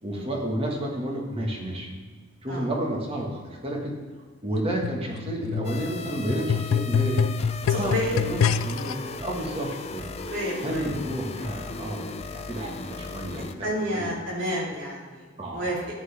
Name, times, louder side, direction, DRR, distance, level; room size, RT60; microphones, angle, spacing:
voice 1, 0.0-1.9 2.4-4.0 4.4-7.3 7.7-10.1 10.6-14.1 15.4-15.9, right 1 dB, 30° right, 0 dB, 1.8 m, -31 dB
sound 1, 4.5-9.0 9.7-9.8, left 6 dB, 80° left, 0.3 m, -26 dB
sound 2, 5.6-13.5, left 4 dB, 30° left, 0.5 m, -38 dB
voice 2, 7.7-8.2 10.3-10.9 13.4-15.8, equal, 65° right, -3 dB, 3.2 m, -30 dB
13.0 x 9.0 x 3.6 m, 1.5 s
head